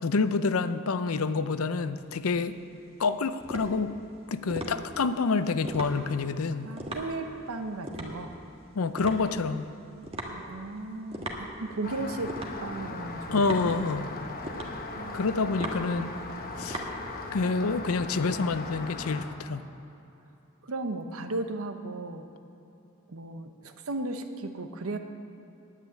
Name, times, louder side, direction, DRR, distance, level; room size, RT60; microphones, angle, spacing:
voice 1, 0.0-2.6 3.0-3.9 4.3-6.7 8.8-9.7 13.3-14.1 15.1-16.1 16.6-16.9 17.3-19.6, left 4 dB, 90° left, 12 dB, 0.6 m, -27 dB
sound 1, 2.0-17.6, right 1 dB, 30° right, 1.4 m, -40 dB
voice 2, 6.6-8.3 10.2-12.3 12.6-13.8 14.9-15.2 15.6-16.2 20.6-22.3 23.1-25.0, right 2 dB, 80° right, 7 dB, 0.9 m, -36 dB
Rain, 11.8-19.3, left 3 dB, 45° left, 1.1 m, -39 dB
10.0 x 8.4 x 9.1 m, 2.9 s
head